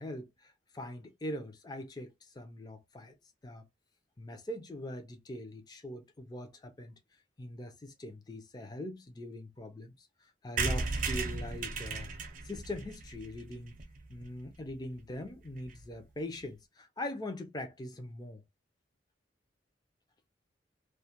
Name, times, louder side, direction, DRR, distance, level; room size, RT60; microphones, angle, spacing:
voice 1, 0.0-3.2 3.4-3.6 4.2-7.0 7.4-12.1 12.4-13.7 14.1-18.4, left 1 dB, 20° left, 0.4 m, -42 dB
sound 1, 10.6-14.3 14.7-14.8 15.0-15.1 15.3-15.4 15.6-15.8, right 4 dB, 45° right, 0.5 m, -35 dB
2.3 x 2.1 x 2.8 m
head